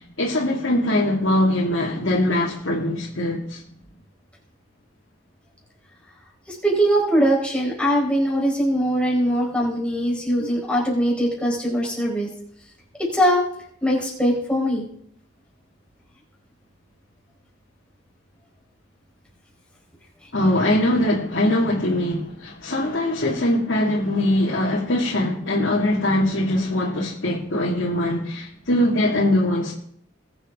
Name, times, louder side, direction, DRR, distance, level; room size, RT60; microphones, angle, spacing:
voice 1, 0.2-3.6 20.3-29.7, left 1 dB, 75° left, 2.2 m, -22 dB
voice 2, 6.5-12.3 13.0-13.4 13.8-14.9, equal, 5° left, 4.2 m, -21 dB
20.5 x 7.6 x 3.6 m
head